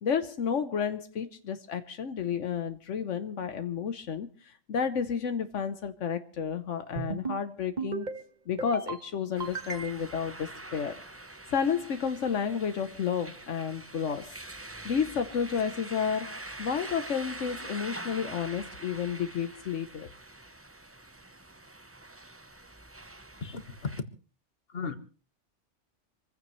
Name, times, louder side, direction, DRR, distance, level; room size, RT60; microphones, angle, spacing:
voice 1, 0.0-8.1 8.5-11.0 11.5-14.3 14.8-20.1, left 7 dB, 80° left, 1.3 m, -31 dB
sound 1, 7.0-7.4 7.8-8.2 8.6-9.0 9.4-10.2, right 5 dB, 35° right, 1.8 m, -35 dB
sound 2, 9.3-24.0, right 2 dB, 15° right, 0.8 m, -45 dB
voice 2, 23.4-23.9 24.7-25.0, left 5 dB, 55° left, 1.7 m, -35 dB
26.5 x 15.5 x 3.2 m
omnidirectional pair, 1.2 m